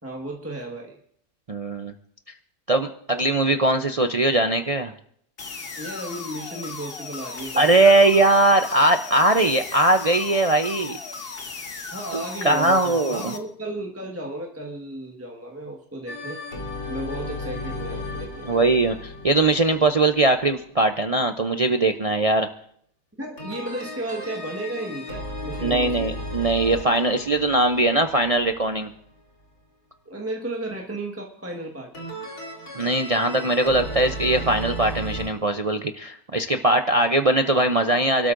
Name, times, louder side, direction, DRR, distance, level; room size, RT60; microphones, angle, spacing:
voice 1, 0.0-1.0 3.1-3.2 5.8-8.0 11.9-16.4 16.9-18.7 23.2-26.1 30.0-32.0, right 1 dB, 10° right, -1 dB, 1.3 m, -34 dB
voice 2, 1.5-1.9 2.7-4.9 7.6-11.0 12.1-13.3 18.4-22.5 25.6-28.9 32.7-38.3, right 2 dB, 60° right, 6 dB, 0.3 m, -20 dB
sound 1, 5.4-13.4, left 4 dB, 40° left, 1.4 m, -36 dB
sound 2, 16.1-20.8 23.4-29.2 31.9-35.3, equal, 70° left, 3.2 m, -35 dB
28.5 x 13.0 x 2.6 m, 0.64 s
omnidirectional pair, 1.6 m